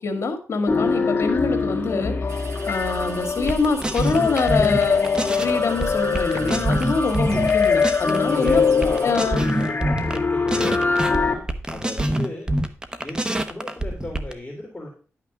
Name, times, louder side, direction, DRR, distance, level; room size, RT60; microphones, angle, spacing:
voice 1, 0.0-2.2 2.7-5.0 5.4-8.6 9.0-9.5, left 4 dB, 65° left, 6 dB, 1.9 m, -24 dB
sound 1, 0.7-11.3, left 5 dB, 40° left, 1.7 m, -23 dB
sound 2, 2.3-9.1, right 4 dB, 80° right, 1.5 m, -41 dB
sound 3, 3.4-5.5 5.8-8.2 8.5-10.2 10.5-14.3, right 1 dB, 15° right, 0.9 m, -25 dB
voice 2, 8.3-12.5 13.0-14.9, left 1 dB, 20° left, 0 dB, 2.6 m, -35 dB
10.5 x 5.8 x 5.0 m, 0.38 s
wide cardioid pair, 100°, 5 cm